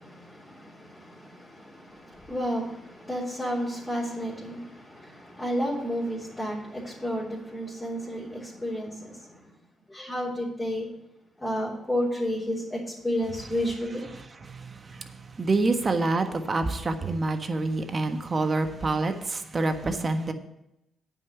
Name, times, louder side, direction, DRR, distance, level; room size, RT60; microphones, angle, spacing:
voice 1, 0.0-9.1 9.9-10.9 11.4-14.0, equal, 15° left, -6 dB, 3.6 m, -31 dB
voice 2, 14.1-20.3, right 3 dB, 40° right, 7 dB, 1.3 m, -27 dB
8.9 x 6.0 x 8.2 m, 0.86 s
supercardioid pair, 60°, 0 cm